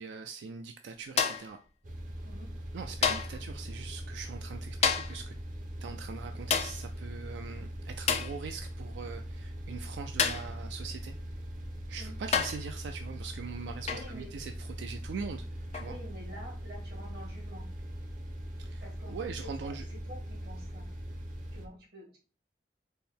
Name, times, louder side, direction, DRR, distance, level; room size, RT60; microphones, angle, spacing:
voice 1, 0.0-1.6 2.7-5.3 5.8-11.1 11.9-15.5 15.7-16.0 18.6-19.9, right 5 dB, 80° right, 6 dB, 0.3 m, -42 dB
sound 1, 1.2-1.6 3.0-3.4 4.8-5.2 6.5-6.8 8.1-8.4 10.2-10.5 11.6-11.7 12.3-12.7 13.9-14.1 15.7-15.9, left 6 dB, 40° left, 0.4 m, -29 dB
sound 2, 1.8-21.7, equal, 50° right, 0.7 m, -41 dB
voice 2, 13.9-14.3 15.8-17.7 18.8-20.9 21.5-22.2, equal, 65° right, -2 dB, 1.8 m, -48 dB
4.3 x 2.1 x 3.5 m, 0.37 s
head